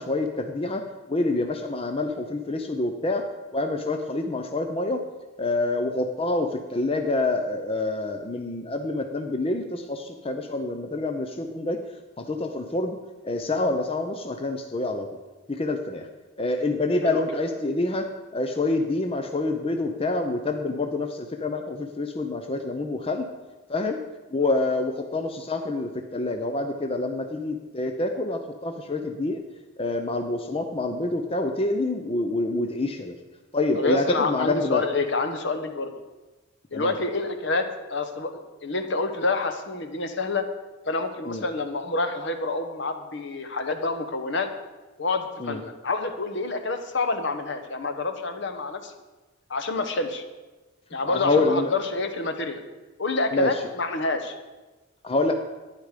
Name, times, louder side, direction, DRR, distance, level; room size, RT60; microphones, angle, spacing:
voice 1, 0.0-3.2 3.5-5.0 5.4-11.8 12.2-13.0 13.2-15.1 15.5-16.1 16.4-23.3 23.7-24.0 24.3-29.4 29.8-33.1 33.5-34.8 36.7-36.9 41.3-41.4 45.4-45.6 51.0-51.7 53.3-53.6 55.0-55.3, left 2 dB, 30° left, 5 dB, 0.7 m, -27 dB
voice 2, 33.7-35.9 36.7-40.5 40.9-44.5 45.0-48.9 49.5-50.2 50.9-52.6 53.0-54.3, left 3 dB, 60° left, 7 dB, 1.1 m, -27 dB
11.5 x 9.9 x 5.0 m, 1.2 s
head